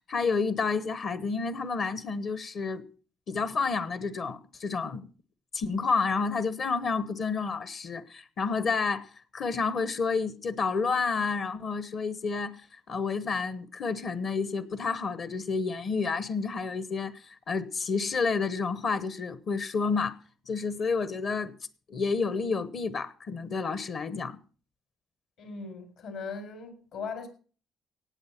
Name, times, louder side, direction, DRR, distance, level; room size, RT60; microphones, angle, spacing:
voice 1, 0.1-2.8 3.3-5.1 5.5-20.2 20.5-21.5 21.9-24.4, left 4 dB, 55° left, 14 dB, 1.0 m, -30 dB
voice 2, 25.4-27.3, left 5 dB, 75° left, 7 dB, 4.6 m, -39 dB
17.5 x 7.8 x 5.9 m, 0.40 s
cardioid pair, 95°, 0 cm